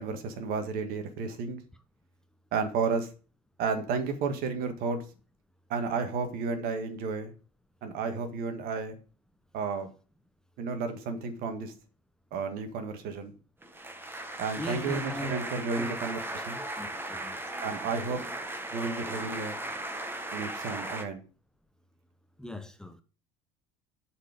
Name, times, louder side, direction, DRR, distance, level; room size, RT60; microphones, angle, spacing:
voice 1, 0.0-1.6 2.5-3.1 3.6-5.0 5.7-7.3 7.8-9.0 9.5-9.9 10.6-11.7 12.3-13.3 14.4-16.6 17.6-18.2 18.7-19.6 20.3-21.2, right 5 dB, 60° right, 1.7 m, -32 dB
sound 1, 13.6-21.0, right 1 dB, 10° right, 1.3 m, -37 dB
voice 2, 14.6-15.4 15.8-16.0 16.3-17.4 22.4-23.0, equal, 5° left, 0.8 m, -40 dB
7.4 x 4.6 x 5.1 m
hypercardioid pair, 75°, 17 cm